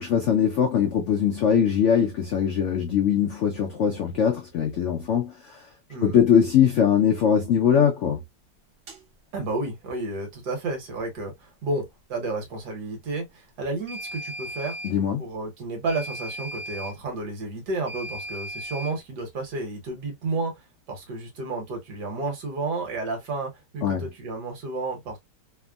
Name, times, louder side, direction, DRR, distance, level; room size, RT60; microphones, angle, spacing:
voice 1, 0.0-5.6 6.0-8.2 14.8-15.2 23.8-24.0, left 8 dB, 90° left, 0.6 m, -21 dB
Washing Machine Finish Beep, 8.9-9.0 13.9-15.0 15.9-17.0 17.9-19.0, equal, 50° right, 0.9 m, -36 dB
voice 2, 9.3-14.8 15.2-20.6 20.9-25.2, right 3 dB, 65° right, 1.6 m, -31 dB
3.4 x 2.1 x 2.2 m
omnidirectional pair, 1.9 m